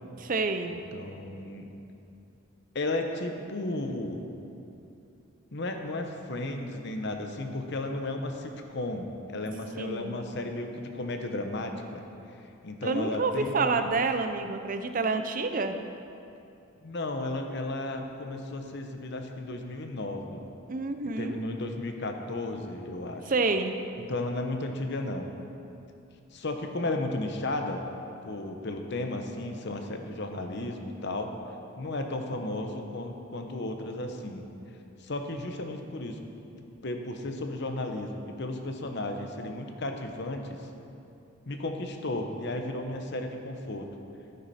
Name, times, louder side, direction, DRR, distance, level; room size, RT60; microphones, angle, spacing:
voice 1, 0.2-0.8 9.8-10.2 12.8-15.8 20.7-21.4 23.3-23.8, right 3 dB, 40° right, 8 dB, 0.6 m, -28 dB
voice 2, 0.9-1.7 2.7-4.2 5.5-12.0 12.6-13.9 16.8-20.5 21.2-23.3 24.1-25.3 26.3-27.8 28.3-31.3 31.8-34.4 35.0-36.2 36.8-40.6 41.5-43.9, left 2 dB, 55° left, 5 dB, 0.9 m, -34 dB
12.0 x 9.7 x 4.2 m, 2.7 s
head